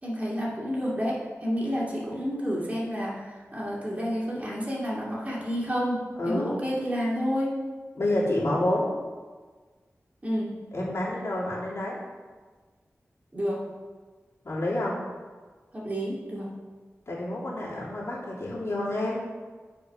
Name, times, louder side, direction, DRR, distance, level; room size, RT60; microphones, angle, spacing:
voice 1, 0.0-7.5 10.2-10.5 13.3-13.6 15.7-16.5, equal, 30° right, -5 dB, 2.3 m, -30 dB
voice 2, 6.2-6.5 7.9-8.9 10.7-12.0 14.4-15.0 17.1-19.2, left 1 dB, 65° left, -6 dB, 2.7 m, -28 dB
8.4 x 5.1 x 5.7 m, 1.4 s
wide cardioid pair, 80°, 5 cm